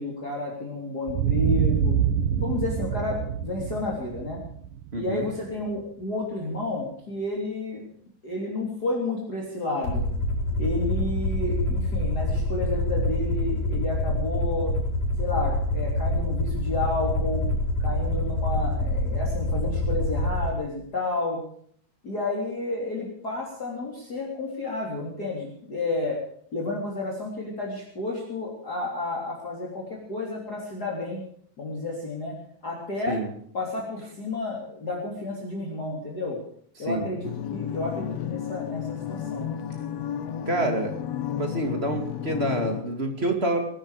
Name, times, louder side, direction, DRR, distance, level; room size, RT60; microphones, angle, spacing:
voice 1, 0.0-2.0 2.4-4.4 5.0-7.9 8.2-10.1 10.6-14.7 15.2-17.5 17.8-21.4 22.0-26.2 26.5-31.2 31.6-32.4 32.6-33.2 33.5-36.4 36.8-39.5, left 2 dB, 30° left, -3 dB, 3.7 m, -31 dB
sound 1, 1.1-5.7, right 9 dB, 80° right, 2.8 m, -26 dB
voice 2, 4.9-5.3 33.1-33.3 36.8-37.1 40.5-40.9 41.4-43.6, right 1 dB, 20° right, 4 dB, 2.5 m, -27 dB
Aircraft, 9.8-20.5, left 1 dB, 85° left, 6.0 m, -26 dB
sound 2, 37.2-42.8, left 9 dB, 65° left, 1.9 m, -32 dB
21.0 x 13.5 x 5.1 m, 0.63 s
omnidirectional pair, 3.7 m